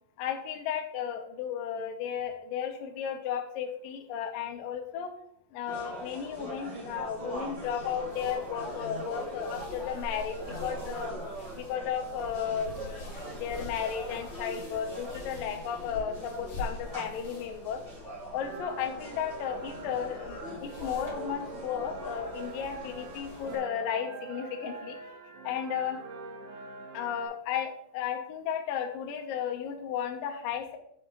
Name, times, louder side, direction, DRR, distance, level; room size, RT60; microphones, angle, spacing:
voice 1, 0.2-5.1 5.5-11.1 11.5-17.8 18.3-25.0 25.4-26.0 26.9-30.8, left 8 dB, 75° left, 4 dB, 2.2 m, -34 dB
sound 1, 5.6-23.6, right 1 dB, 15° right, 1.1 m, -42 dB
sound 2, 6.9-23.6, left 2 dB, 50° left, 2.5 m, -46 dB
sound 3, 18.4-27.3, right 3 dB, 85° right, 3.0 m, -44 dB
6.7 x 6.5 x 3.0 m, 0.71 s
omnidirectional pair, 4.8 m